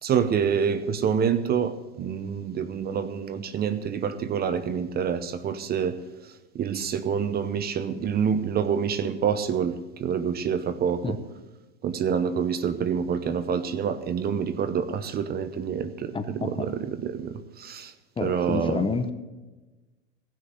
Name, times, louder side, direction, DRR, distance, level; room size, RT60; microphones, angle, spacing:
voice 1, 0.0-6.0 6.5-11.2 11.8-17.9 18.2-18.9, right 7 dB, 25° right, 12 dB, 0.7 m, -27 dB
voice 2, 16.1-16.7 18.2-19.1, left 4 dB, 15° left, 9 dB, 0.7 m, -29 dB
16.5 x 6.4 x 7.7 m, 1.2 s
hypercardioid pair, 110°, 35 cm